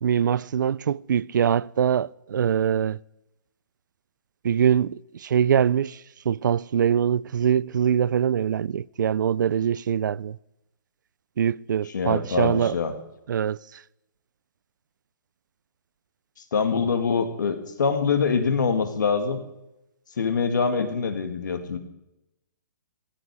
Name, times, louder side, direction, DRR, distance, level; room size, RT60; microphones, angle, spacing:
voice 1, 0.0-3.0 4.4-10.4 11.4-12.8 13.3-13.8, right 8 dB, 70° right, 0.4 m, -23 dB
voice 2, 11.9-12.9 16.5-19.4 20.2-21.8, left 5 dB, 70° left, 2.0 m, -24 dB
15.0 x 11.5 x 4.8 m
hypercardioid pair, 175°, 10 cm